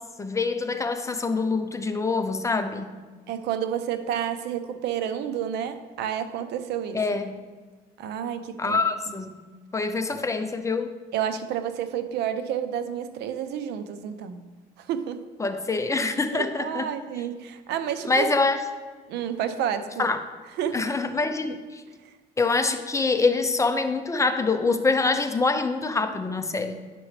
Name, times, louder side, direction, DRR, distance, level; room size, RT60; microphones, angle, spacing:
voice 1, 0.2-3.0 6.9-7.4 8.6-9.4 9.7-10.9 15.4-16.9 18.1-18.6 20.0-20.2 20.7-21.8 22.4-26.8, left 3 dB, 20° left, 7 dB, 0.6 m, -25 dB
voice 2, 3.3-7.0 8.0-9.2 10.1-10.2 11.1-14.4 14.8-15.2 16.3-18.3 19.1-20.1 20.6-20.9, right 9 dB, 80° right, 10 dB, 0.6 m, -30 dB
9.8 x 5.9 x 3.3 m, 1.4 s
cardioid pair, 110°, 17 cm